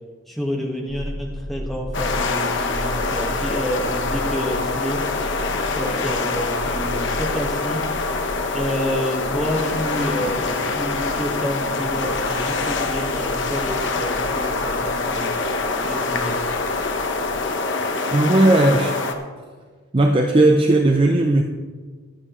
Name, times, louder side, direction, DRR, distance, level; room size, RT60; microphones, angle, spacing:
voice 1, 0.3-5.0 5.7-7.9 8.5-15.3 15.8-16.4, equal, ahead, -1 dB, 1.5 m, -29 dB
sound 1, 0.9-17.5, equal, 65° right, 1.6 m, -36 dB
sound 2, 1.9-19.1, left 3 dB, 55° left, 1.0 m, -25 dB
voice 2, 18.1-19.0 19.9-21.4, right 2 dB, 25° right, 4 dB, 0.5 m, -16 dB
22.0 x 7.7 x 3.1 m, 1.5 s
head